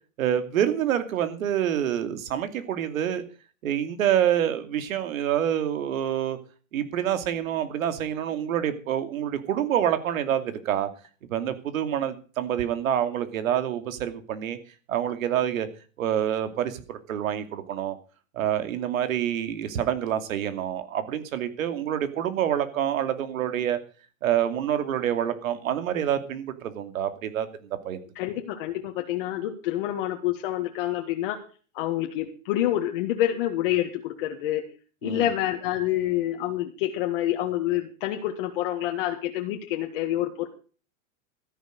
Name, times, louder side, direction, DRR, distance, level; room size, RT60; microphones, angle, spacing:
voice 1, 0.2-3.2 3.6-6.4 6.7-10.9 11.3-14.6 14.9-15.7 16.0-18.0 18.3-23.8 24.2-27.5 27.8-28.0 35.0-35.2, right 10 dB, 85° right, 9 dB, 2.6 m, -27 dB
voice 2, 28.2-31.4 31.7-34.7 35.0-40.5, left 13 dB, 40° left, 3 dB, 1.7 m, -27 dB
13.5 x 11.0 x 5.2 m, 0.38 s
supercardioid pair, 180°, 39 cm